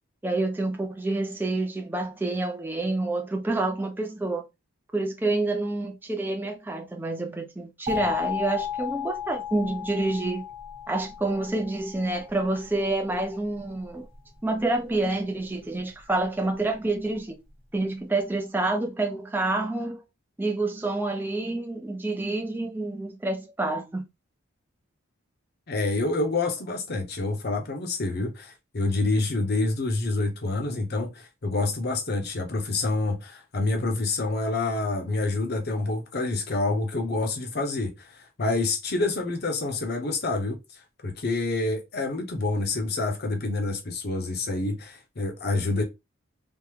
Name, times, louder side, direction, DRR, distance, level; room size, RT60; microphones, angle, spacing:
voice 1, 0.2-4.4 4.9-10.5 10.9-14.1 14.4-17.4 17.7-20.0 20.4-24.0, right 2 dB, 10° right, 0.3 m, -28 dB
sound 1, 7.9-12.6, left 8 dB, 25° right, 0.8 m, -34 dB
voice 2, 25.7-40.6 41.0-45.8, left 2 dB, 45° left, 0.7 m, -27 dB
3.5 x 2.1 x 3.0 m
head